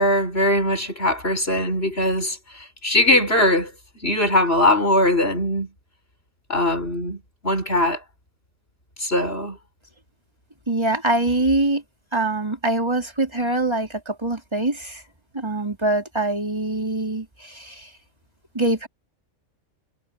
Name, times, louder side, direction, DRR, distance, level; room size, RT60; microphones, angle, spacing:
voice 1, 0.0-2.4 2.8-3.7 4.0-5.7 6.5-8.0 9.0-9.6, left 1 dB, 50° left, 7.3 m, -20 dB
voice 2, 10.7-11.8 12.1-15.0 15.3-17.9 18.5-18.9, right 2 dB, 20° right, 4.5 m, -24 dB
omnidirectional pair, 1.3 m